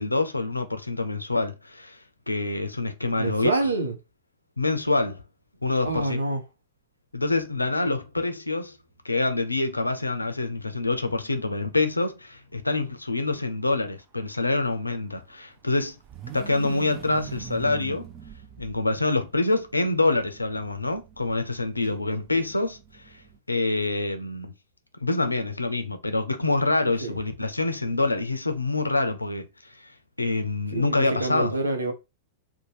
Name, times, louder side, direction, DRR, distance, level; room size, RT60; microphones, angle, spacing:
voice 1, 0.0-2.0 2.3-3.5 4.6-5.2 5.6-6.2 7.1-8.8 9.0-16.0 16.3-18.1 18.6-23.2 23.5-24.5 25.0-29.9 30.2-31.6, left 2 dB, 85° left, 0.4 m, -26 dB
voice 2, 3.2-4.0 5.8-6.4 22.0-22.2 27.0-27.2 30.7-31.9, right 2 dB, 80° right, 0.7 m, -27 dB
sound 1, 9.7-12.1 14.4-23.4, right 8 dB, 35° right, 0.4 m, -45 dB
2.7 x 2.2 x 3.1 m
figure-of-eight pair, 95°, 0 cm